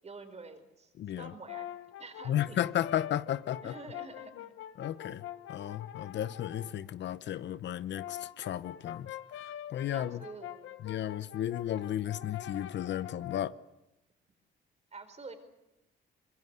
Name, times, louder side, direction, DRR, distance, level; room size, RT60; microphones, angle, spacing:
voice 1, 0.0-0.9 1.2-2.6 3.6-4.5 4.9-5.0 9.9-10.8 14.9-15.4, right 3 dB, 35° right, 4.7 m, -48 dB
voice 2, 1.0-1.3 2.3-3.7 4.8-5.2 5.5-10.2 10.8-13.5, left 11 dB, 65° left, 0.8 m, -34 dB
Brass instrument, 1.2-6.8 7.7-13.6, left 11 dB, 85° left, 1.3 m, -45 dB
25.0 x 21.5 x 8.1 m
cardioid pair, 90°, 20 cm